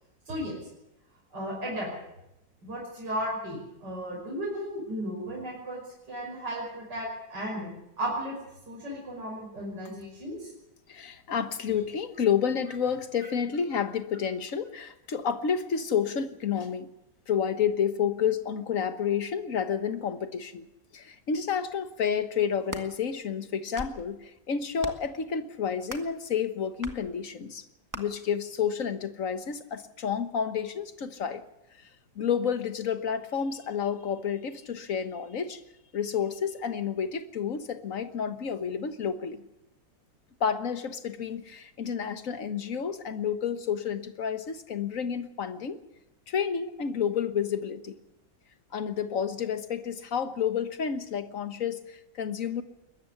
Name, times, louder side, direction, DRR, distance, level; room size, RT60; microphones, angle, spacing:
voice 1, 1.3-1.9 2.6-5.8 6.1-7.7 8.0-8.4 8.7-10.5, equal, 75° right, -3 dB, 6.2 m, -34 dB
voice 2, 10.9-16.9 17.3-20.7 20.9-27.6 27.9-31.4 31.8-31.9 32.1-35.6 35.9-39.4 40.4-45.8 46.3-48.0 48.7-52.6, left 7 dB, 50° left, 10 dB, 1.6 m, -30 dB
sound 1, 22.4-22.9 23.5-24.0 24.8-25.1 25.9-26.2 26.8-27.0 27.9-28.0, right 1 dB, 10° right, 1.5 m, -39 dB
21.5 x 14.0 x 9.9 m, 0.88 s
omnidirectional pair, 1.9 m